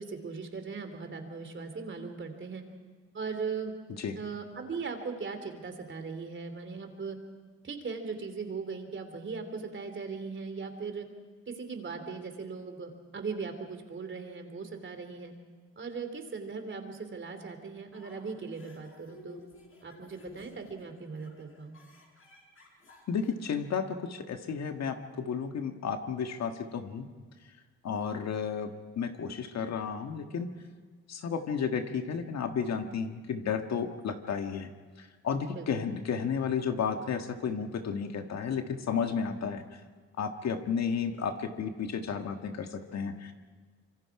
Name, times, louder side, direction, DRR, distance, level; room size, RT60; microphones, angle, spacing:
voice 1, 0.0-2.6 3.1-3.7 4.1-7.2 7.6-11.1 11.5-15.3 15.8-19.4 19.8-21.8 35.5-35.7, right 5 dB, 40° right, 6 dB, 3.2 m, -39 dB
sound 1, 17.9-23.6, left 2 dB, 45° left, 6.3 m, -54 dB
voice 2, 23.1-27.1 27.8-30.5 31.1-34.7 35.0-39.6 40.2-43.3, left 6 dB, 60° left, 6 dB, 1.7 m, -32 dB
26.0 x 24.0 x 4.9 m, 1.5 s
cardioid pair, 90°, 30 cm